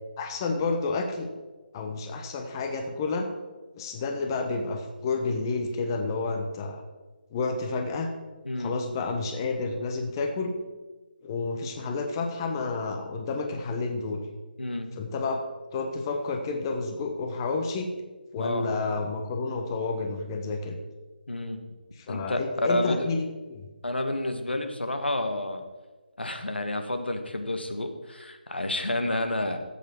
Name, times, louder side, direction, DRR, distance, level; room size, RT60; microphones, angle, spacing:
voice 1, 0.2-1.3 1.7-3.3 3.8-6.8 7.3-8.1 8.6-10.5 11.2-14.2 15.0-15.4 15.7-17.9 18.3-20.8 21.9-23.7, left 3 dB, 25° left, 4 dB, 1.0 m, -30 dB
voice 2, 18.4-18.7 21.3-21.6 22.1-22.4 22.7-23.1 23.8-25.6 26.2-29.6, left 1 dB, 85° left, 6 dB, 1.5 m, -30 dB
14.0 x 8.3 x 4.6 m, 1.2 s
figure-of-eight pair, 155°, 5 cm